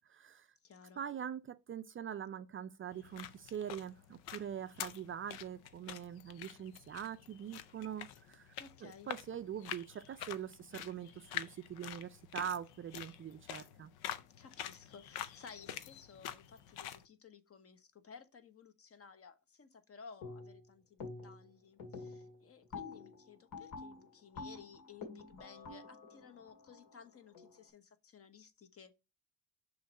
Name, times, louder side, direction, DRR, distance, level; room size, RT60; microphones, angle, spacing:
voice 1, 0.1-0.5 1.0-8.5 8.8-13.9, right 9 dB, 35° right, 0.4 m, -43 dB
voice 2, 0.6-1.0 8.6-9.1 14.4-29.0, left 6 dB, 40° left, 0.9 m, -56 dB
sound 1, 2.9-17.0, left 10 dB, 85° left, 0.7 m, -47 dB
sound 2, 20.2-20.7 21.0-21.5 21.8-27.6, left 4 dB, 65° left, 2.1 m, -48 dB
6.2 x 3.1 x 5.2 m
cardioid pair, 100°, 37 cm